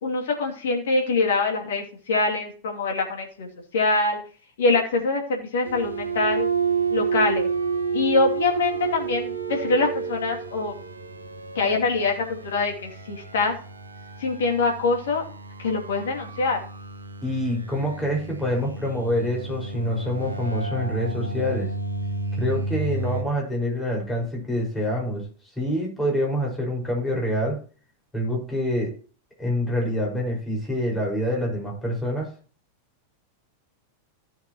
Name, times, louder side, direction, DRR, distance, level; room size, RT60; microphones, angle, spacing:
voice 1, 0.0-4.2 4.6-6.5 6.9-7.5 7.9-10.7 11.5-13.6 14.2-15.2 15.6-16.6, left 3 dB, 60° left, 2 dB, 2.6 m, -24 dB
sound 1, 5.6-23.2, right 4 dB, 75° right, 1.3 m, -30 dB
voice 2, 17.2-21.7 22.4-25.2 25.6-27.6 28.1-28.9 29.4-32.3, equal, 10° left, -1 dB, 5.2 m, -26 dB
14.5 x 7.3 x 3.0 m, 0.39 s
figure-of-eight pair, 90°, 0 cm